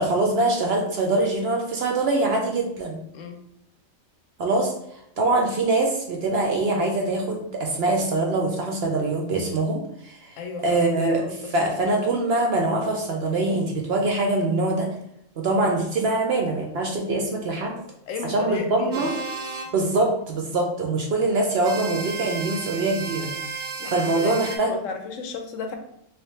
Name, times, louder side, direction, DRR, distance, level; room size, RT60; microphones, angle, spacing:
voice 1, 0.0-3.0 4.4-4.7 5.2-14.9 15.4-17.8 18.2-19.1 19.7-23.3 23.9-24.7, right 2 dB, 65° right, 1 dB, 0.7 m, -23 dB
voice 2, 10.4-11.5 18.1-19.1 23.8-25.7, left 5 dB, 75° left, 5 dB, 0.9 m, -34 dB
sound 1, 18.9-19.7 21.6-24.6, right 5 dB, 85° right, 1.0 m, -33 dB
3.2 x 2.9 x 3.1 m, 0.78 s
omnidirectional pair, 1.4 m